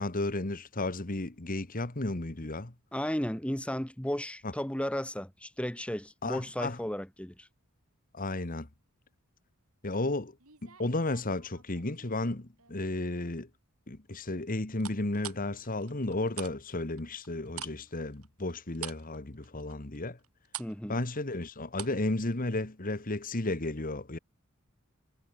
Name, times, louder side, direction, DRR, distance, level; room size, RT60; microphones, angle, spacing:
voice 1, 0.0-2.7 4.4-4.5 6.2-6.8 8.1-8.7 9.8-10.4 10.6-13.5 13.9-20.2 20.9-24.2, left 2 dB, 40° left, 1.6 m, -33 dB
voice 2, 2.9-7.5 20.6-21.0, equal, 5° left, 1.3 m, -34 dB
sound 1, 10.4-12.1 12.6-13.0 14.8-16.5 16.8-22.1 22.3-22.4, right 10 dB, 85° right, 6.7 m, -45 dB
head